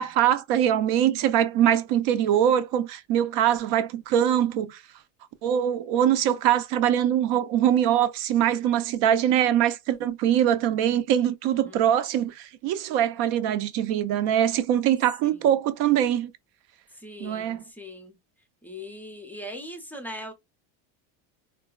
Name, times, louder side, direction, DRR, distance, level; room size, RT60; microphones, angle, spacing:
voice 1, 0.0-4.8 5.4-16.3 17.2-17.6, right 10 dB, 70° right, 0.6 m, -23 dB
voice 2, 11.6-11.9 15.2-15.4 17.0-18.1 18.6-20.3, left 1 dB, 5° left, 0.4 m, -40 dB
3.8 x 2.3 x 2.3 m
cardioid pair, 155°, 39 cm